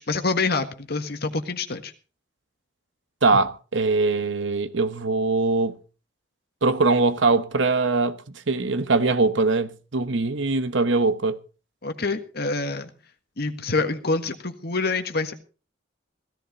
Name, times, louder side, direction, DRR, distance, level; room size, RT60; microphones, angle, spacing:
voice 1, 0.0-1.9 11.8-12.9 13.4-15.3, left 3 dB, 55° left, 1.6 m, -26 dB
voice 2, 3.2-5.8 6.6-8.2 8.5-11.4, right 3 dB, 75° right, 1.0 m, -22 dB
16.5 x 13.5 x 4.1 m
head